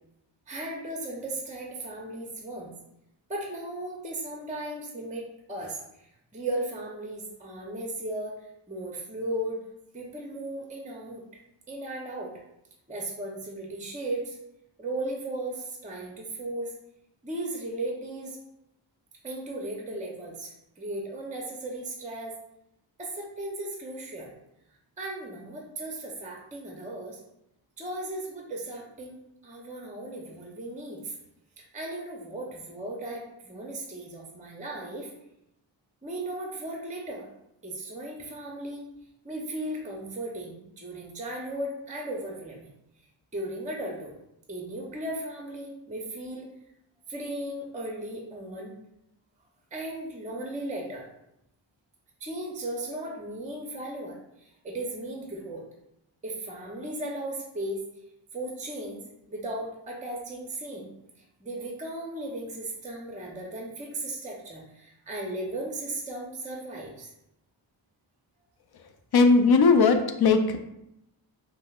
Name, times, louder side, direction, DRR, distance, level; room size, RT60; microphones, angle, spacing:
voice 1, 0.5-2.7 3.3-8.4 8.7-9.6 9.9-11.2 11.7-12.4 12.9-14.4 14.8-16.7 17.2-18.4 19.2-22.4 23.0-24.3 25.0-27.2 27.8-31.1 31.6-35.1 36.0-37.3 37.6-38.9 39.2-42.7 43.3-44.1 44.5-46.5 47.1-48.7 49.7-51.1 52.2-55.6 56.2-57.8 58.3-59.0 59.3-60.9 61.4-67.1, right 1 dB, 15° right, -1 dB, 0.6 m, -36 dB
voice 2, 69.1-70.6, left 4 dB, 55° left, 6 dB, 0.5 m, -19 dB
5.2 x 2.0 x 2.3 m, 0.83 s
cardioid pair, 45°, 47 cm